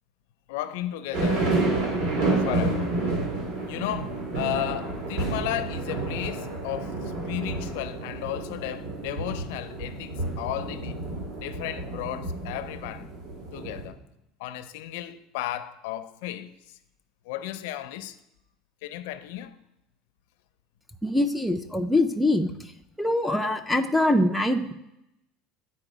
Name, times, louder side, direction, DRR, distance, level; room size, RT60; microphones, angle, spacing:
voice 1, 0.5-1.5 2.4-2.9 3.7-11.0 11.4-13.1 13.5-14.0 14.4-16.5 17.3-18.2 18.8-19.6, left 13 dB, 70° left, 0.5 m, -34 dB
sound 1, 1.1-13.9, right 2 dB, 60° right, 2.2 m, -30 dB
voice 2, 21.0-22.7 23.0-24.7, left 1 dB, ahead, 0.3 m, -24 dB
9.0 x 4.4 x 4.9 m
cardioid pair, 175°, 0 cm